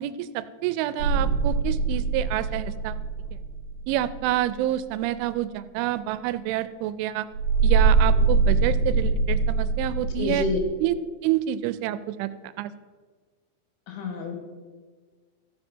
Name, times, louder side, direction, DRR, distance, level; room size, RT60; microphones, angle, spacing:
voice 1, 0.0-3.0 3.9-7.3 7.6-10.5 10.8-11.0 11.2-12.3 12.6-12.7, right 13 dB, 90° right, 14 dB, 3.0 m, -28 dB
sound 1, 1.0-4.5 7.3-10.6, right 4 dB, 60° left, 4.1 m, -23 dB
voice 2, 10.2-10.6 13.9-14.4, left 4 dB, 80° left, 3 dB, 3.8 m, -28 dB
14.5 x 7.3 x 4.4 m, 1.4 s
omnidirectional pair, 5.4 m